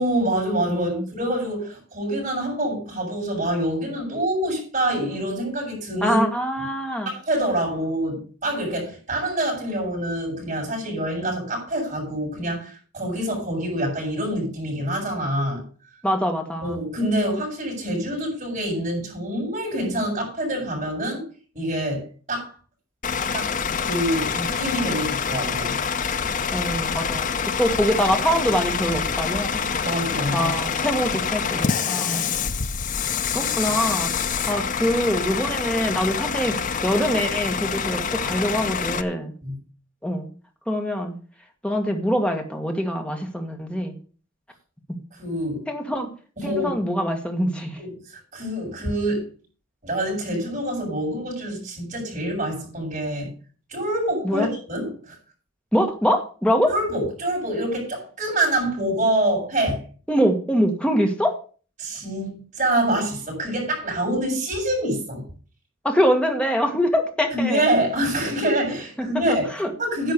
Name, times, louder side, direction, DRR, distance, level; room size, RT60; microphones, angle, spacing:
voice 1, 0.0-6.2 7.1-15.6 16.6-21.2 21.5-22.5 23.3-23.5 23.8-25.8 29.7-30.5 39.4-39.5 45.2-45.6 46.4-46.8 47.8-47.9 48.3-49.3 49.8-53.3 53.7-55.2 56.7-59.8 61.8-65.2 67.3-69.4 69.8-70.1, right 1 dB, 35° right, 7.5 m, -26 dB
voice 2, 0.7-1.1 6.0-7.1 16.0-16.8 26.5-27.3 27.6-29.6 30.3-32.3 33.3-34.1 34.5-39.3 40.0-40.2 40.7-41.1 41.6-43.9 44.9-45.0 45.7-46.1 46.4-47.8 54.2-54.5 55.7-56.7 60.1-61.4 65.8-67.7 69.0-69.2 69.6-69.7, equal, 5° left, 1.7 m, -24 dB
Bus / Idling, 23.0-39.0, left 6 dB, 40° left, 0.6 m, -26 dB
11.0 x 6.3 x 6.7 m
head